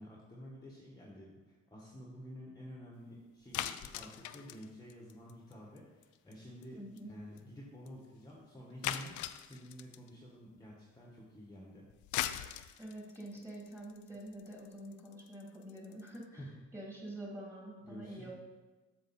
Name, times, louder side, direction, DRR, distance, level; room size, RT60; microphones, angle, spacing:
voice 1, 0.0-6.8 7.1-11.8 16.4-16.7 17.8-18.3, equal, 10° left, -3 dB, 1.5 m, -50 dB
sound 1, 3.5-5.8 6.0-6.3 6.6-6.7 7.0-7.1 7.4-7.5 7.9-8.0 8.8-10.1 11.9-16.2, left 12 dB, 75° left, 0.5 m, -40 dB
voice 2, 6.7-7.1 12.8-16.4 16.7-18.3, right 1 dB, 10° right, -3 dB, 2.8 m, -47 dB
7.7 x 6.5 x 4.3 m, 1.2 s
cardioid pair, 90°, 30 cm